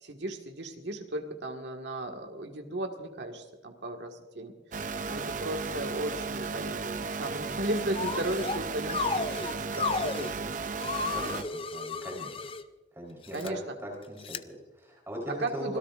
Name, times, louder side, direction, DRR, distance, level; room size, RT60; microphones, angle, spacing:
voice 1, 0.0-10.5 13.3-13.8 15.3-15.8, right 1 dB, 70° right, 3 dB, 1.8 m, -36 dB
sound 1, 4.7-11.4, right 4 dB, 45° right, 0.6 m, -35 dB
sound 2, 7.9-8.6 8.9-10.3 10.8-12.6 13.2-13.5 14.2-14.4, left 4 dB, 30° left, 0.5 m, -33 dB
voice 2, 11.0-12.4 12.9-13.5 13.8-15.8, equal, 15° right, -2 dB, 4.0 m, -40 dB
26.0 x 17.0 x 2.5 m, 1.2 s
head